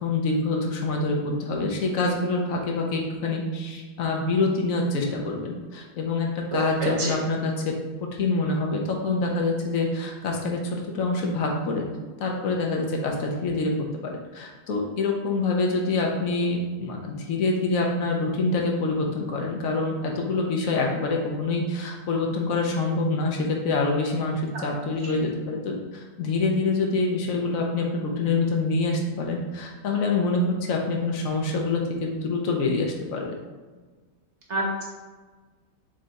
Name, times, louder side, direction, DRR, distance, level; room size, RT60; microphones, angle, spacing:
voice 1, 0.0-7.5 8.2-11.9 12.2-13.7 14.0-33.3, left 3 dB, 60° left, 0 dB, 1.0 m, -26 dB
voice 2, 6.5-7.1 24.5-24.8 25.1-25.2 34.5-34.8, right 1 dB, 45° right, -3 dB, 1.2 m, -28 dB
3.7 x 3.2 x 4.0 m, 1.4 s
omnidirectional pair, 1.9 m